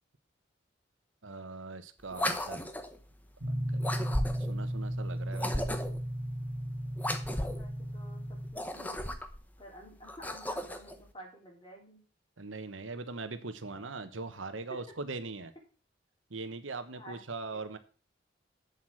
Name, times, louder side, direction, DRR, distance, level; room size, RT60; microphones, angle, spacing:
voice 1, 1.2-2.7 3.8-3.9 4.5-5.8 12.4-15.5 16.3-17.8, right 3 dB, 90° right, 11 dB, 1.2 m, -41 dB
sound 1, 2.1-3.0 3.8-4.6 5.3-6.1 7.0-7.7 8.4-9.4 10.0-11.0, left 1 dB, 10° left, 0.9 m, -35 dB
sound 2, 3.4-8.5, equal, 55° right, 2.1 m, -35 dB
voice 2, 7.1-8.2 8.5-9.1 9.6-12.0 16.9-17.2 17.5-17.6, equal, 25° left, -1 dB, 3.9 m, -51 dB
8.2 x 7.6 x 6.3 m, 0.37 s
head